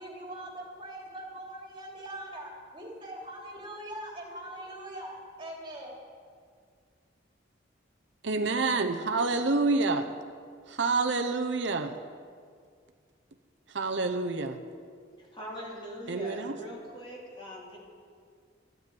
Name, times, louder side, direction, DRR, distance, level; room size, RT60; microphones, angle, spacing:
voice 1, 0.0-6.0, right 1 dB, 25° right, -1 dB, 2.9 m, -42 dB
voice 2, 8.2-10.1 10.7-11.9 13.7-14.6 16.1-16.6, right 3 dB, 65° right, 6 dB, 0.8 m, -28 dB
voice 3, 15.2-17.8, equal, 25° left, -3 dB, 2.8 m, -42 dB
13.0 x 9.6 x 8.4 m, 2.1 s
head